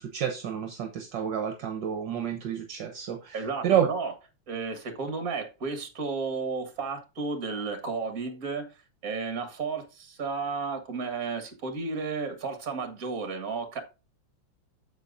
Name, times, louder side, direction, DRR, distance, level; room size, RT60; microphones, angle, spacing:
voice 1, 0.0-3.9, right 9 dB, 70° right, 1.6 m, -29 dB
voice 2, 3.3-4.1 4.5-8.7 9.0-13.8, right 4 dB, 50° right, 1.9 m, -33 dB
8.9 x 7.0 x 2.6 m
omnidirectional pair, 2.1 m